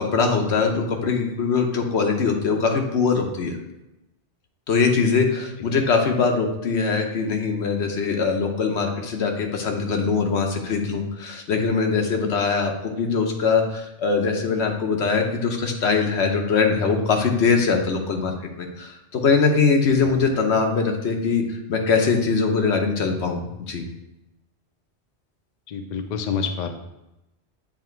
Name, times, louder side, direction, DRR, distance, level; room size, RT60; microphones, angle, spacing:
voice 1, 0.0-3.6 4.7-23.9, left 5 dB, 85° left, 3 dB, 1.1 m, -22 dB
voice 2, 25.7-26.7, left 6 dB, 50° left, 6 dB, 0.6 m, -27 dB
7.4 x 2.9 x 4.4 m, 0.92 s
omnidirectional pair, 1.1 m